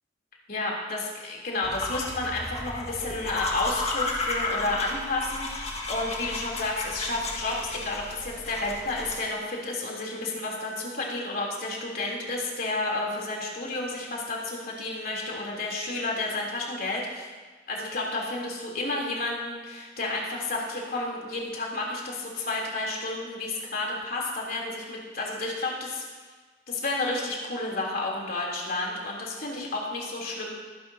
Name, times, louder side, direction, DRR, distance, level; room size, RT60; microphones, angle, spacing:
voice 1, 0.5-17.3 17.7-26.0 26.7-30.5, left 2 dB, 50° left, -3 dB, 3.3 m, -31 dB
sound 1, 1.6-9.2, left 2 dB, 35° left, 1.8 m, -33 dB
22.5 x 11.5 x 2.8 m, 1.4 s
head